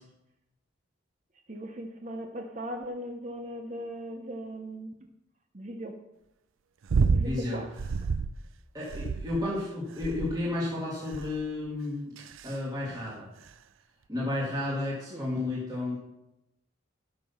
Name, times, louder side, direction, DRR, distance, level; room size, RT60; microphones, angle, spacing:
voice 1, 1.5-4.9 5.5-6.0 7.1-7.7 15.1-15.3, right 1 dB, 35° right, 5 dB, 0.7 m, -38 dB
sound 1, 6.9-7.3 7.8-8.4 8.9-9.5 10.0-10.5 11.1-11.5 12.2-12.5 13.5-13.6, right 4 dB, 90° right, 0.4 m, -28 dB
voice 2, 7.2-7.6 8.7-13.3 14.1-16.0, left 2 dB, 20° right, -6 dB, 1.8 m, -32 dB
12.5 x 5.5 x 5.5 m, 0.90 s
head